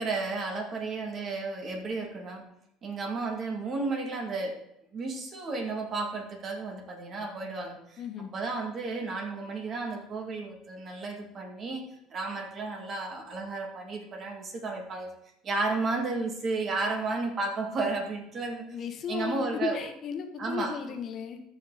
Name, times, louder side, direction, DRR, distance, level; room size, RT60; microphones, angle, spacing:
voice 1, 0.0-2.4 2.8-4.7 4.9-8.0 8.3-11.8 12.1-15.1 15.4-18.7 19.1-19.9 20.4-20.8, right 3 dB, 40° right, 3 dB, 2.5 m, -33 dB
voice 2, 8.0-8.3 18.7-21.4, left 7 dB, 45° left, 7 dB, 1.3 m, -35 dB
13.5 x 5.9 x 4.2 m, 0.78 s
supercardioid pair, 105°, 0 cm